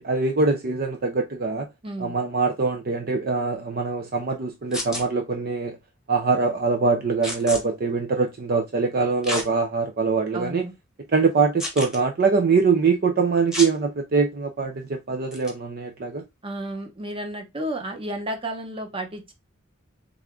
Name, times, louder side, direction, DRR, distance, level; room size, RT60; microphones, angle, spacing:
voice 1, 0.0-1.7 2.0-5.8 6.1-10.6 11.1-16.2, right 4 dB, 50° right, 0.5 m, -23 dB
voice 2, 1.8-2.1 10.3-10.7 16.4-19.3, right 1 dB, 25° right, 0.9 m, -32 dB
sound 1, 4.7-5.0 7.2-7.6 9.2-9.5 10.1-10.2 11.6-12.0 13.5-13.7 15.3-15.5, left 1 dB, 5° right, 1.1 m, -30 dB
3.5 x 3.5 x 3.6 m
head